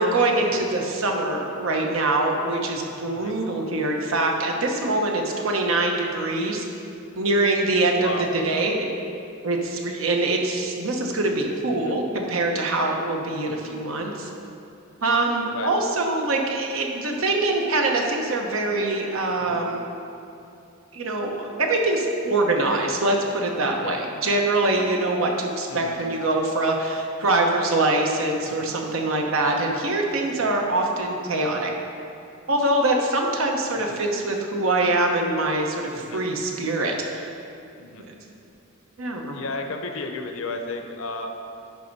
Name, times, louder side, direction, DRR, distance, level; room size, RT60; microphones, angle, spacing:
voice 1, 0.0-6.6 7.2-8.9 9.4-14.3 15.0-19.8 20.9-31.7 32.5-37.3 39.0-39.4, right 2 dB, 80° right, 1 dB, 1.0 m, -24 dB
voice 2, 7.9-8.3 11.7-11.9 13.5-13.7 15.5-15.7 19.5-19.6 23.8-23.9 25.7-26.0 28.5-28.7 30.4-30.6 33.9-34.0 35.9-36.2 37.8-38.0 39.3-41.3, left 3 dB, 75° left, 5 dB, 0.7 m, -34 dB
10.5 x 3.5 x 5.4 m, 2.7 s
head